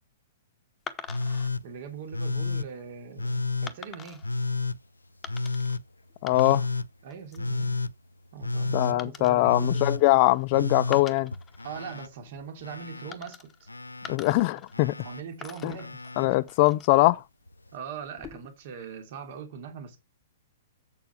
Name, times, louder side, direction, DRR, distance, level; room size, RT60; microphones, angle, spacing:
sound 1, 0.9-1.5 2.2-2.5 3.7-4.3 5.2-5.8 6.1-6.8 7.1-7.5 9.0-10.4 10.8-12.1 13.1-13.7 14.0-15.1 15.4-17.1 18.0-18.6, left 7 dB, 20° left, 1.1 m, -45 dB
Telephone, 1.1-1.6 2.1-2.7 3.2-3.7 4.2-4.8 5.3-5.8 6.3-6.9 7.4-7.9 8.4-9.0 9.5-10.0 10.5-12.1 12.4-13.1 13.7-14.2 14.7-15.2 15.8-16.3 17.5-17.6, left 3 dB, 85° left, 0.4 m, -31 dB
voice 1, 1.6-4.2 7.0-7.7 8.3-9.7 11.6-13.7 15.0-16.4 17.7-20.0, right 6 dB, 50° right, 3.1 m, -41 dB
voice 2, 6.2-6.6 8.7-11.3 14.1-14.9 15.6-15.8 16.2-17.2, left 19 dB, 40° left, 0.6 m, -22 dB
7.9 x 6.9 x 4.7 m
figure-of-eight pair, 110°, 0 cm